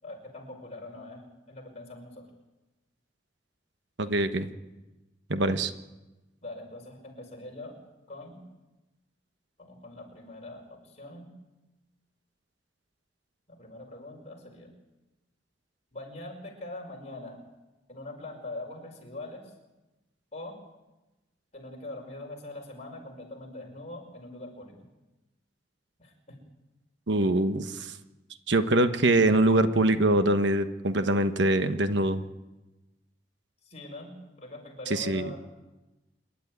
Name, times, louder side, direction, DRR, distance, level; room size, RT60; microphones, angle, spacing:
voice 1, 0.0-2.3 6.4-7.8 8.1-8.4 9.6-11.3 13.5-14.7 15.9-17.4 17.9-19.5 20.3-20.6 21.5-24.7 26.0-26.4 33.6-35.4, left 2 dB, 35° left, 0 dB, 5.5 m, -42 dB
voice 2, 4.0-4.5 5.3-5.7 27.1-27.9 28.5-32.2 34.9-35.3, right 1 dB, 75° right, 9 dB, 1.2 m, -24 dB
27.0 x 11.5 x 9.6 m, 1.1 s
head